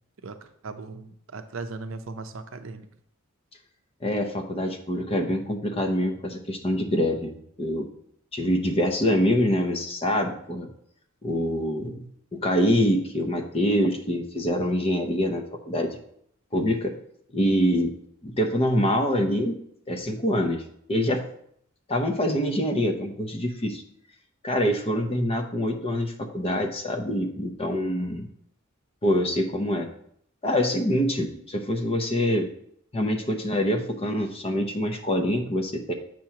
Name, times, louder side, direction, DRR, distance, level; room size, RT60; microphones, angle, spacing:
voice 1, 0.2-2.9, right 3 dB, 65° right, 9 dB, 0.5 m, -38 dB
voice 2, 4.0-7.9 8.3-10.7 11.2-16.0 16.5-16.9 17.3-17.9 18.2-19.6 19.9-20.6 20.9-21.3 21.9-23.8 24.4-28.3 29.0-29.9 30.4-32.5 32.9-35.9, equal, 30° left, 5 dB, 0.7 m, -25 dB
7.5 x 3.0 x 5.7 m, 0.69 s
head